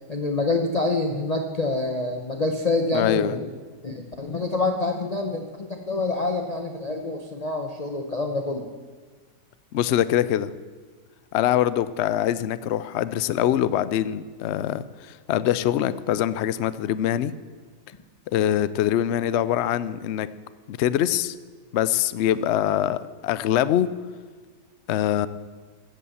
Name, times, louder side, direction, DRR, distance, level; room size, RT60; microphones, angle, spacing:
voice 1, 0.1-3.5 3.8-8.7, left 2 dB, 35° left, 3 dB, 0.7 m, -26 dB
voice 2, 2.9-3.4 9.7-10.5 11.3-17.3 18.3-20.3 20.7-21.3 21.7-23.9 24.9-25.3, left 11 dB, 75° left, 16 dB, 0.6 m, -23 dB
15.0 x 8.4 x 7.1 m, 1.5 s
omnidirectional pair, 1.8 m